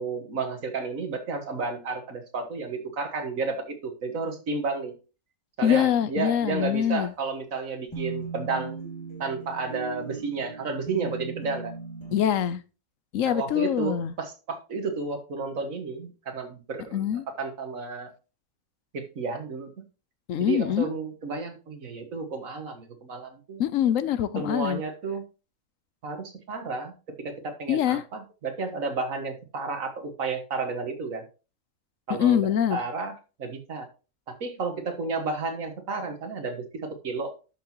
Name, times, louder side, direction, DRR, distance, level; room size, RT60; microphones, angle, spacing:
voice 1, 0.0-4.9 5.6-8.8 9.2-11.7 13.3-18.1 18.9-19.7 20.4-23.6 24.4-25.2 26.0-31.2 32.1-33.1 33.4-33.9 34.4-37.3, right 4 dB, 70° right, 6 dB, 1.9 m, -32 dB
voice 2, 5.6-7.1 12.1-12.6 13.1-14.1 16.9-17.2 20.3-20.9 23.6-24.8 27.7-28.0 32.1-32.8, left 10 dB, 70° left, 14 dB, 1.0 m, -24 dB
sound 1, 7.9-12.2, right 5 dB, 20° left, 2.5 m, -38 dB
11.5 x 6.0 x 3.0 m, 0.33 s
omnidirectional pair, 1.5 m